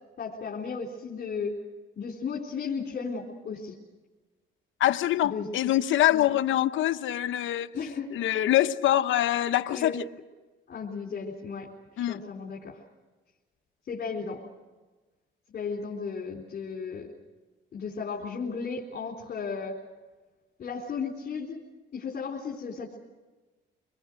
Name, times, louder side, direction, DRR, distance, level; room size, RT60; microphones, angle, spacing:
voice 1, 0.2-1.6 2.0-3.8 5.2-5.7 6.1-6.3 7.7-8.1 9.7-9.9 10.7-11.7 12.0-12.8 13.9-14.4 15.5-17.1 17.7-19.8 20.6-21.7 21.9-23.0, left 5 dB, 50° left, 4.2 m, -35 dB
voice 2, 4.8-7.7 8.1-10.0 12.0-12.2, left 13 dB, 75° left, 1.0 m, -24 dB
26.0 x 21.5 x 6.5 m
cardioid pair, 90°, 20 cm